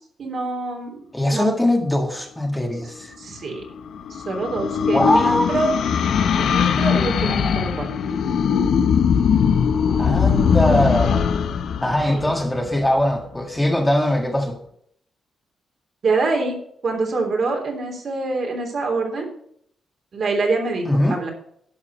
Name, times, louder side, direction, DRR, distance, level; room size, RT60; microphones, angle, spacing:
voice 1, 0.2-1.0 1.3-1.5 3.2-3.6 4.1-5.7 6.4-7.9 12.1-12.2 16.0-16.6 16.8-19.3 20.1-21.3, right 3 dB, 60° right, 1 dB, 3.4 m, -25 dB
voice 2, 1.1-3.1 4.9-5.5 10.0-11.3 11.8-14.6 20.8-21.2, left 1 dB, 10° left, 2 dB, 1.8 m, -21 dB
sound 1, 3.4-13.0, left 7 dB, 75° left, 0.8 m, -20 dB
11.0 x 5.9 x 6.5 m, 0.66 s
cardioid pair, 90°, 0 cm